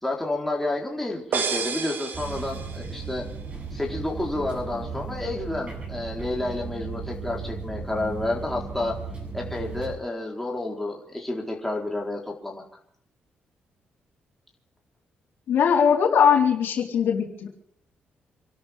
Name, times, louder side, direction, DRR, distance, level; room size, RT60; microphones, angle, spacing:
voice 1, 0.0-3.3 3.7-8.9 9.3-12.6, left 2 dB, 5° left, -1 dB, 4.3 m, -30 dB
sound 1, 1.3-3.1, right 6 dB, 60° right, 2.1 m, -30 dB
sound 2, 2.1-9.9, right 4 dB, 35° right, 7.9 m, -36 dB
voice 2, 15.5-17.5, left 7 dB, 70° left, 0 dB, 4.2 m, -20 dB
28.5 x 12.5 x 3.7 m, 0.66 s
cardioid pair, 115°, 4 cm